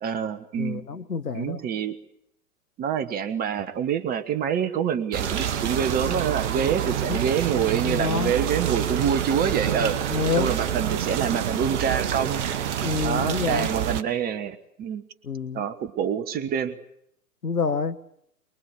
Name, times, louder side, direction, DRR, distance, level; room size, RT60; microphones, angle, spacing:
voice 1, 0.0-0.8 1.3-2.0 2.8-12.5 13.0-15.0 15.5-16.8, right 8 dB, 20° right, 13 dB, 1.3 m, -26 dB
voice 2, 0.6-1.6 7.1-7.2 7.8-8.3 10.1-10.5 12.8-13.7 15.2-15.6 17.4-18.0, left 5 dB, 80° left, 14 dB, 1.3 m, -27 dB
sound 1, 5.1-14.0, right 9 dB, 50° right, 1.5 m, -27 dB
23.5 x 22.0 x 8.5 m, 0.73 s
figure-of-eight pair, 110°, 46 cm